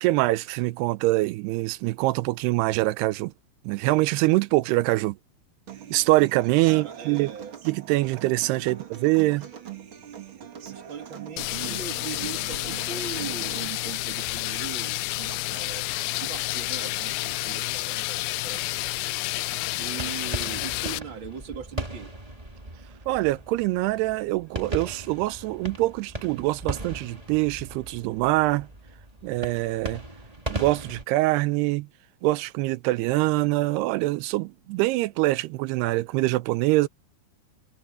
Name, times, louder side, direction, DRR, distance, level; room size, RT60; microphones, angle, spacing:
voice 1, 0.0-3.3 3.6-5.2 5.9-7.3 7.7-9.5 23.1-28.7 29.2-30.0 30.5-31.9 32.2-36.9, right 19 dB, 80° right, 2.6 m, -24 dB
Human voice / Acoustic guitar, 5.7-13.7, right 9 dB, 55° right, 1.4 m, -42 dB
voice 2, 6.7-7.6 8.6-8.8 10.7-18.8 19.8-22.1, right 7 dB, 40° right, 2.0 m, -39 dB
sound 1, 11.4-21.0, left 19 dB, 85° left, 2.1 m, -30 dB
sound 2, 19.8-31.0, right 1 dB, 15° right, 1.2 m, -38 dB
omnidirectional pair, 4.9 m